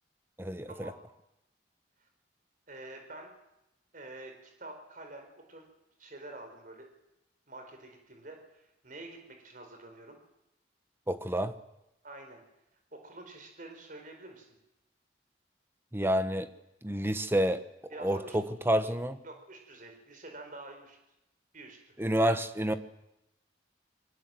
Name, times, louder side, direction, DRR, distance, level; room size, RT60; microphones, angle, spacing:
voice 1, 0.4-0.9 11.1-11.5 15.9-16.5 16.8-17.6 18.0-19.2 22.0-22.7, equal, 10° right, 11 dB, 1.2 m, -29 dB
voice 2, 2.7-3.3 3.9-5.6 6.0-6.9 7.5-10.2 12.0-12.4 12.9-14.5 17.9-18.4 19.2-21.0 21.5-21.9, right 2 dB, 45° right, 4 dB, 4.6 m, -47 dB
25.0 x 23.5 x 7.8 m, 0.90 s
head